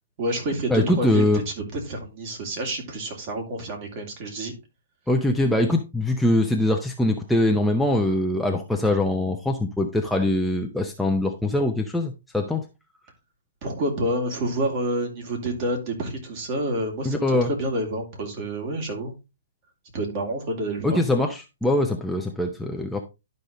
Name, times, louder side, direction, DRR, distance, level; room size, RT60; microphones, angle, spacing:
voice 1, 0.2-4.5 13.6-19.1 19.9-21.0, right 1 dB, 40° right, 2 dB, 2.8 m, -28 dB
voice 2, 0.7-1.4 5.1-12.6 17.0-17.5 20.8-23.0, left 1 dB, ahead, 1 dB, 0.7 m, -23 dB
11.5 x 5.3 x 3.1 m, 0.26 s
hypercardioid pair, 150°, 0 cm